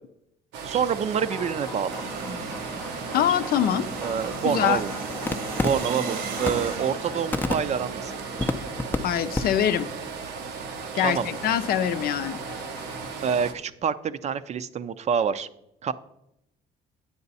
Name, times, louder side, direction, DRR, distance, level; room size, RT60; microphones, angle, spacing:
sound 1, 0.5-13.5, right 5 dB, 90° right, 1.0 m, -36 dB
voice 1, 0.6-2.1 4.0-4.9 5.6-8.1 11.0-11.3 13.2-15.5 15.8-15.9, right 7 dB, 40° right, 14 dB, 0.5 m, -27 dB
sound 2, 1.1-9.0 9.3-9.4 9.7-9.9 10.3-13.2, left 3 dB, 10° left, 0.5 m, -35 dB
sound 3, 1.9-8.6, right 4 dB, 70° right, 1.2 m, -36 dB
voice 2, 3.1-3.9 4.4-4.8 9.0-9.9 10.9-12.4, left 10 dB, 65° left, 10 dB, 0.6 m, -24 dB
9.5 x 7.8 x 4.1 m, 0.81 s
cardioid pair, 110°, 17 cm